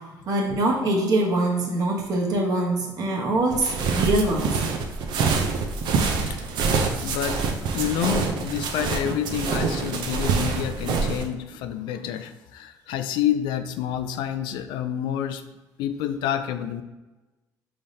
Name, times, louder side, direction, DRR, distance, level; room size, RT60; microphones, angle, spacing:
voice 1, 0.3-4.5, right 2 dB, 55° right, -1 dB, 1.0 m, -23 dB
sound 1, 3.5-11.2, right 4 dB, 75° right, 0.5 m, -25 dB
voice 2, 6.9-15.4 15.8-16.8, left 10 dB, 85° left, 9 dB, 0.4 m, -28 dB
5.4 x 3.4 x 2.7 m, 1.1 s
cardioid pair, 120°, 8 cm